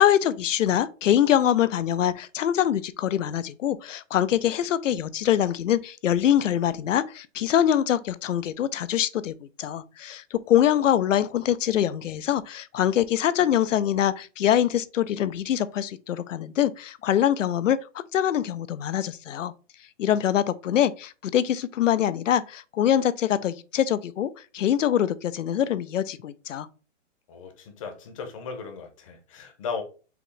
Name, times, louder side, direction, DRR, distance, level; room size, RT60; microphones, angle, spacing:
voice 1, 0.0-17.8 18.1-19.5 20.0-26.7, left 10 dB, 75° left, 0.6 m, -24 dB
voice 2, 27.3-29.8, left 5 dB, 25° left, 0.8 m, -36 dB
4.9 x 3.0 x 3.2 m
hypercardioid pair, 160°, 38 cm